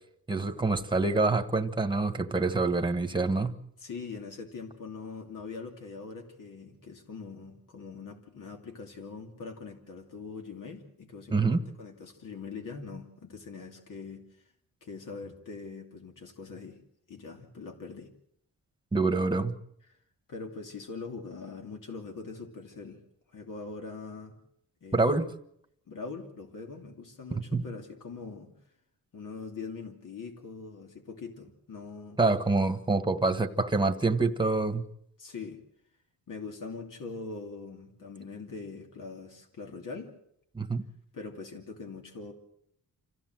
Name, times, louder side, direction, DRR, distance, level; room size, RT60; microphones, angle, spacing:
voice 1, 0.3-3.5 11.3-11.6 18.9-19.5 24.9-25.3 27.3-27.7 32.2-34.8 40.5-40.8, right 3 dB, 15° right, 8 dB, 1.5 m, -26 dB
voice 2, 3.8-14.4 14.8-16.8 17.1-18.1 19.9-20.0 20.3-23.0 23.3-24.4 24.8-25.2 25.9-28.5 29.1-32.2 35.2-35.6 36.3-40.1 41.1-42.3, left 4 dB, 65° left, 3 dB, 2.8 m, -42 dB
26.5 x 16.0 x 7.8 m, 0.73 s
wide cardioid pair, 150°, 35 cm